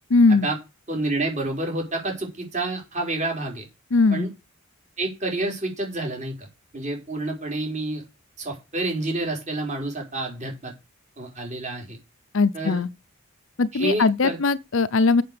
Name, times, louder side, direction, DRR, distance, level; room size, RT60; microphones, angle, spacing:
voice 1, 0.1-0.5 3.9-4.3 12.3-12.9 13.6-15.2, left 3 dB, 65° left, 0.6 m, -19 dB
voice 2, 0.9-3.6 4.1-4.3 5.0-6.5 6.7-8.0 8.4-10.7 11.2-12.0 12.5-12.8 13.7-14.4, right 2 dB, 35° right, 4.5 m, -28 dB
7.7 x 6.7 x 6.8 m
head